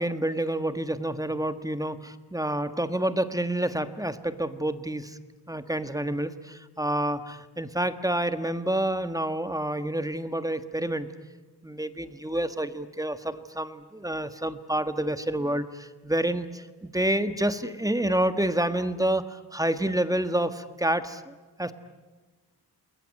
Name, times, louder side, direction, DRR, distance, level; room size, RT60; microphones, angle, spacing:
voice 1, 0.0-2.0 2.3-5.2 5.5-11.1 11.6-21.7, right 1 dB, 10° right, 11 dB, 1.4 m, -28 dB
28.5 x 21.5 x 9.6 m, 1.3 s
wide cardioid pair, 105°, 40 cm